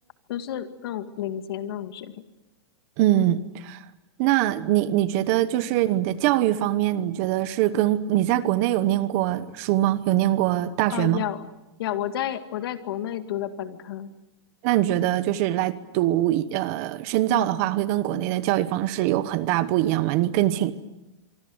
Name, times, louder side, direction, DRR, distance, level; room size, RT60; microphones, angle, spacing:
voice 1, 0.3-2.1 10.9-11.5 11.8-14.1, left 11 dB, 55° left, 2.1 m, -31 dB
voice 2, 3.0-3.8 4.2-11.2 14.6-20.7, right 14 dB, 35° right, 1.0 m, -23 dB
25.5 x 25.0 x 8.0 m
supercardioid pair, 170°, 15 cm